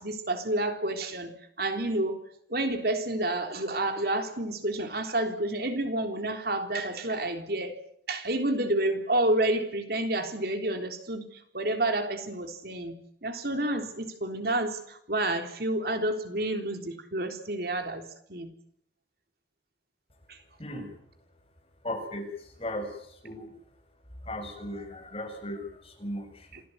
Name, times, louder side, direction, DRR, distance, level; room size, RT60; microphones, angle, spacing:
voice 1, 0.0-2.2 2.5-7.8 8.1-18.0 18.3-18.5 20.3-20.4 26.5-26.6, right 1 dB, 55° right, 6 dB, 3.6 m, -29 dB
voice 2, 20.6-20.9 21.8-23.5 24.2-26.5, left 1 dB, 30° left, 5 dB, 7.4 m, -37 dB
27.5 x 18.5 x 9.5 m, 0.70 s
head